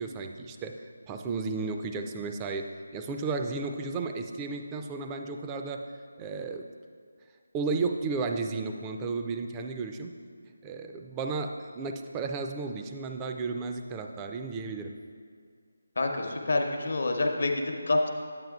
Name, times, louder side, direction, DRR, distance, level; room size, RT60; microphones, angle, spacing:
voice 1, 0.0-5.9 6.2-6.7 7.5-10.1 10.6-14.9, right 4 dB, 15° right, 5 dB, 0.4 m, -33 dB
voice 2, 16.0-18.1, left 2 dB, 60° left, 3 dB, 0.8 m, -27 dB
9.0 x 8.8 x 2.3 m, 2.1 s
figure-of-eight pair, 155°, 0 cm